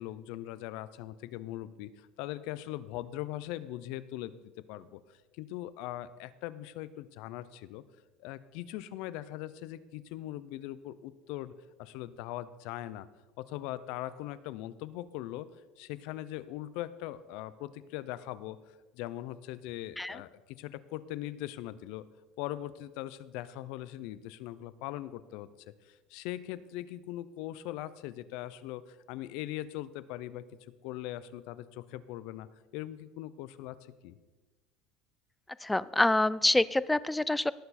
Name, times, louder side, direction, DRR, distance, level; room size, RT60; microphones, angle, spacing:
voice 1, 0.0-7.8 8.2-11.5 11.8-13.1 13.4-15.5 15.8-22.0 22.4-25.5 25.8-30.5 30.8-32.5 32.7-33.8 34.0-34.2, left 14 dB, 70° left, 16 dB, 0.6 m, -40 dB
voice 2, 35.6-37.5, left 2 dB, 5° left, 19 dB, 0.3 m, -26 dB
18.0 x 6.9 x 4.3 m, 1.2 s
cardioid pair, 135°, 0 cm